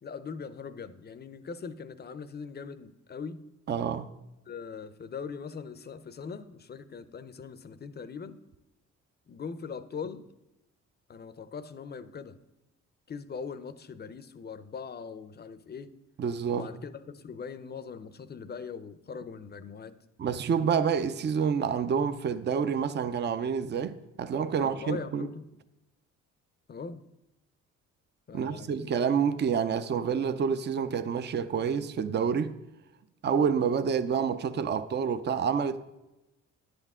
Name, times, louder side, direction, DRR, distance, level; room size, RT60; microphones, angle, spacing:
voice 1, 0.0-3.4 4.5-8.4 9.3-10.3 11.1-12.4 13.1-15.9 16.5-20.0 24.6-25.4 26.7-27.0 28.3-28.9, left 5 dB, 35° left, 0.6 m, -41 dB
voice 2, 3.7-4.1 16.2-16.7 20.2-25.3 28.3-32.5 33.2-35.8, right 7 dB, 35° right, 0.5 m, -28 dB
10.0 x 7.8 x 3.6 m
cardioid pair, 90°, 30 cm